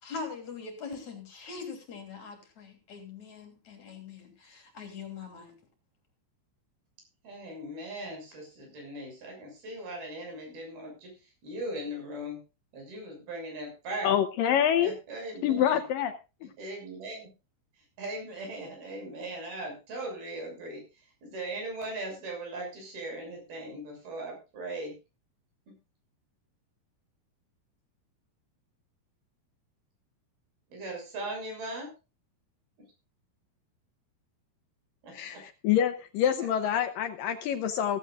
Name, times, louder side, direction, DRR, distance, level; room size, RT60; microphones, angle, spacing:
voice 1, 0.0-5.6, left 5 dB, 50° left, 4.2 m, -42 dB
voice 2, 7.2-11.1 11.4-12.4 12.7-14.1 14.8-15.8 16.6-17.3 18.0-20.8 21.2-25.0 25.7-25.8 30.7-31.9 35.0-35.4 36.4-36.5, right 1 dB, 70° right, 8.5 m, -39 dB
voice 3, 14.0-14.9 15.4-16.1 16.4-16.5 35.1-35.4 35.6-38.0, left 9 dB, 70° left, 2.4 m, -26 dB
16.0 x 15.5 x 2.5 m
omnidirectional pair, 4.5 m